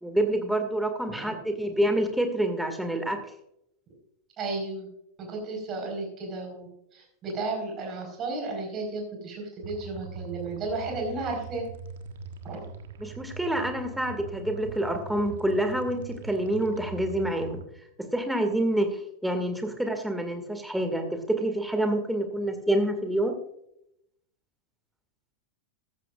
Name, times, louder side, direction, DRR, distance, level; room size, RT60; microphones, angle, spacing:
voice 1, 0.0-3.2 13.0-17.6 18.1-23.3, right 1 dB, 5° right, 5 dB, 2.1 m, -27 dB
voice 2, 1.1-1.6 4.4-4.9 5.2-6.7 6.9-11.6 12.4-12.7, right 3 dB, 30° right, 1 dB, 4.5 m, -33 dB
sound 1, 9.6-17.6, right 4 dB, 60° right, 1.4 m, -42 dB
14.5 x 14.0 x 2.5 m, 0.79 s
figure-of-eight pair, 90°, 0 cm